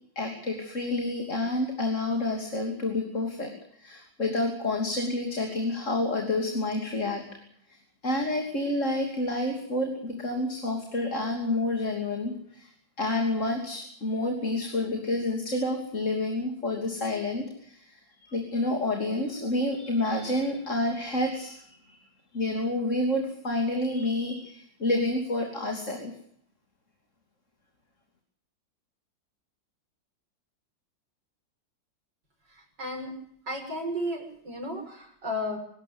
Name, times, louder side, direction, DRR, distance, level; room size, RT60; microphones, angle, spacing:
voice 1, 0.1-3.5 3.8-7.2 7.7-7.8 8.0-12.7 13.0-21.6 21.9-22.0 22.3-26.1, left 2 dB, 40° left, 3 dB, 3.3 m, -29 dB
voice 2, 32.5-33.1 33.5-35.6, left 1 dB, 65° right, 1 dB, 7.3 m, -33 dB
25.0 x 13.0 x 9.6 m, 0.67 s
omnidirectional pair, 2.0 m